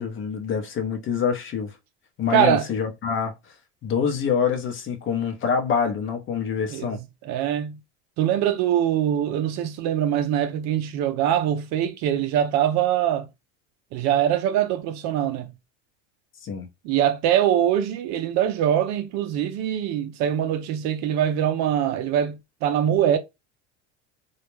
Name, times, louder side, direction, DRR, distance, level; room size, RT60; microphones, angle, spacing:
voice 1, 0.0-1.7 2.2-3.3 3.8-7.0 16.4-16.7, left 6 dB, 35° left, 0.7 m, -25 dB
voice 2, 2.3-2.7 6.7-7.8 8.2-13.3 13.9-15.5 16.8-23.2, right 10 dB, 55° right, 0.5 m, -23 dB
2.4 x 2.0 x 3.0 m
supercardioid pair, 105°, 34 cm